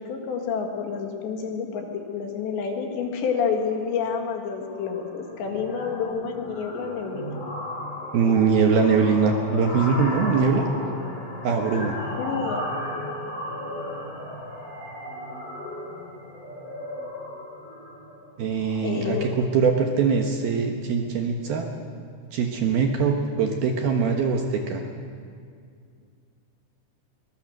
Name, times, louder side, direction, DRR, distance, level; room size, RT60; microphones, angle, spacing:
voice 1, 0.0-7.3 12.0-12.6 18.8-19.3, left 6 dB, 70° left, 3 dB, 3.9 m, -29 dB
sound 1, 3.4-3.7 4.1-4.3 4.6-19.5, left 1 dB, 35° left, 6.5 m, -35 dB
voice 2, 8.1-10.6 11.4-12.0 18.4-21.7 22.3-24.8, right 5 dB, 65° right, 3 dB, 2.6 m, -22 dB
22.5 x 21.0 x 6.6 m, 2.2 s
omnidirectional pair, 5.5 m